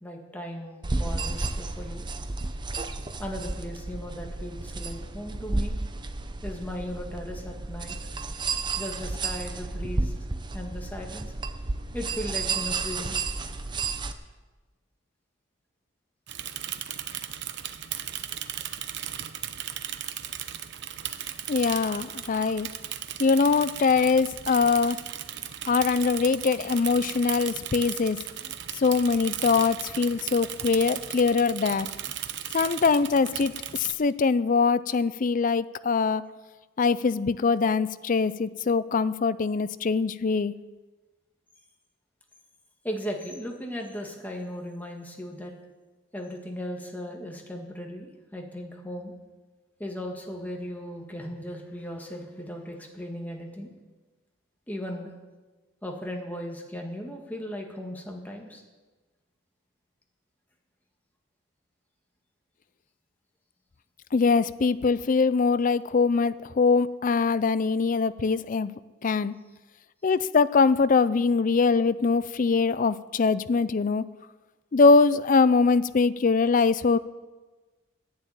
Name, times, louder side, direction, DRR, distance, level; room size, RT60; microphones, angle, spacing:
voice 1, 0.0-2.1 3.2-5.8 6.4-8.0 8.8-10.1 10.5-11.3 11.9-13.2 42.8-45.5 46.1-49.1 49.8-53.7 54.7-55.1 55.8-58.6, equal, 10° left, 1 dB, 1.8 m, -37 dB
sound 1, 0.8-14.1, right 3 dB, 25° right, 0.7 m, -32 dB
Bicycle / Mechanisms, 16.3-33.9, right 11 dB, 60° right, 0.8 m, -36 dB
voice 2, 21.5-22.7 23.2-25.0 25.7-28.2 28.8-31.9 32.5-36.2 36.8-40.5 64.1-68.7 69.0-69.3 70.0-74.0 74.7-77.0, left 4 dB, 40° left, 16 dB, 0.4 m, -23 dB
11.0 x 9.3 x 9.0 m, 1.3 s
head